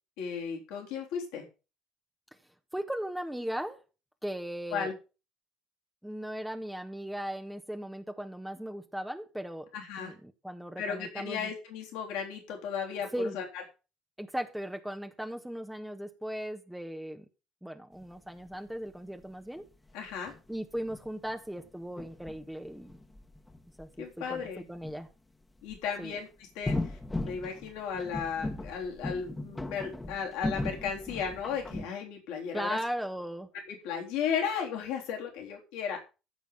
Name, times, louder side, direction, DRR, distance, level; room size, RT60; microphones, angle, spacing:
voice 1, 0.2-1.4 4.7-4.9 9.7-10.1 10.8-13.4 19.9-20.3 24.0-24.6 25.6-32.8 33.7-36.1, left 7 dB, 75° left, 3.6 m, -35 dB
voice 2, 2.7-3.8 4.2-4.9 6.0-9.7 10.0-11.5 13.1-13.4 14.2-17.2 17.6-19.7 20.5-23.0 23.8-25.1 26.0-26.2 32.5-33.5, equal, 5° right, 1.5 m, -37 dB
sound 1, 18.0-18.1 18.5-18.6 19.2-19.3 19.6-19.7 19.9-20.0 20.3-21.7 22.0-23.8 24.7-25.0 25.7-25.8 26.7-31.9, left 2 dB, 15° left, 1.8 m, -37 dB
14.5 x 5.1 x 7.4 m
hypercardioid pair, 55°, 0 cm